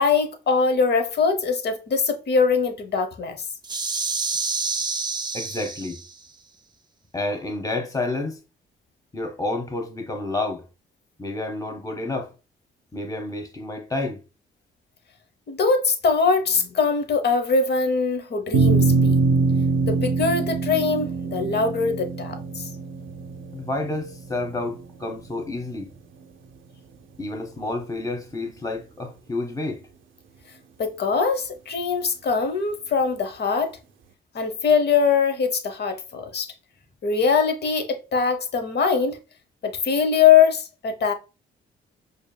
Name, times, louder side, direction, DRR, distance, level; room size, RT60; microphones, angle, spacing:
voice 1, 0.0-3.4 15.5-19.2 19.9-22.7 30.8-33.8 34.3-36.5 37.0-39.2 39.6-41.1, left 5 dB, 55° left, 0.8 m, -22 dB
sound 1, 3.6-6.2, right 4 dB, 20° right, 0.4 m, -28 dB
voice 2, 5.3-6.0 7.1-8.4 9.1-10.6 11.2-12.3 12.9-14.2 23.5-25.9 27.2-29.8, left 2 dB, 15° left, 1.0 m, -29 dB
sound 2, 18.5-25.1, right 4 dB, 75° right, 0.5 m, -23 dB
5.0 x 2.6 x 2.2 m
cardioid pair, 70°, 21 cm